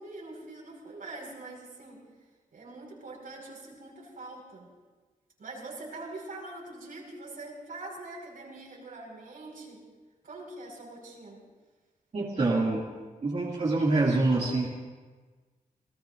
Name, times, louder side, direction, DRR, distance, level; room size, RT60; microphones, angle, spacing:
voice 1, 0.0-2.0 2.5-4.7 5.4-9.8 10.2-11.4, right 2 dB, 80° right, -2 dB, 5.2 m, -43 dB
voice 2, 12.1-12.9 13.2-14.7, right 2 dB, 50° right, -5 dB, 2.5 m, -25 dB
28.0 x 19.0 x 2.6 m, 1.3 s
wide cardioid pair, 135°, 15 cm